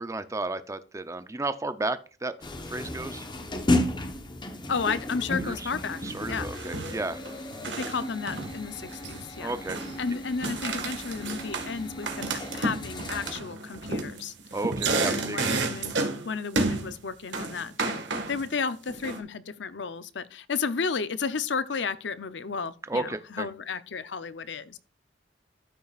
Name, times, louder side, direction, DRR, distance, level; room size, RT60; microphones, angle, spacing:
voice 1, 0.0-2.3 2.7-3.2 5.4-5.7 6.0-7.2 9.4-9.8 14.5-15.4 22.9-23.5, right 2 dB, 15° right, 0.5 m, -33 dB
sound 1, 2.4-13.3, left 1 dB, 25° left, 1.0 m, -34 dB
voice 2, 4.7-6.0 6.3-6.5 7.8-9.5 10.0-14.3 14.9-15.9 16.2-24.8, left 5 dB, 75° left, 0.7 m, -33 dB
sound 2, 6.0-6.3 6.5-8.0 8.3-9.2 9.5-10.0 10.4-11.7 12.0-16.3 16.5-16.9 17.3-18.5 18.9-19.2, right 3 dB, 80° right, 1.7 m, -31 dB
13.0 x 5.7 x 2.4 m
head